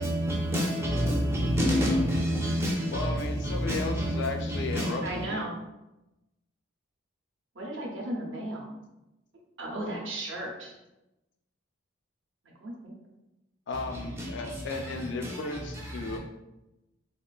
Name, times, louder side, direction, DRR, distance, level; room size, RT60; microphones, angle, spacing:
voice 1, 0.0-5.0 14.2-14.8 15.2-15.4 16.0-16.2, equal, 10° right, 0.5 m, -28 dB
voice 2, 2.9-5.5 13.7-16.2, left 3 dB, 55° left, 0.4 m, -35 dB
voice 3, 5.0-5.5 7.6-8.7 9.6-10.7 12.6-12.9, right 1 dB, 60° right, 0.7 m, -35 dB
3.6 x 2.4 x 2.3 m
head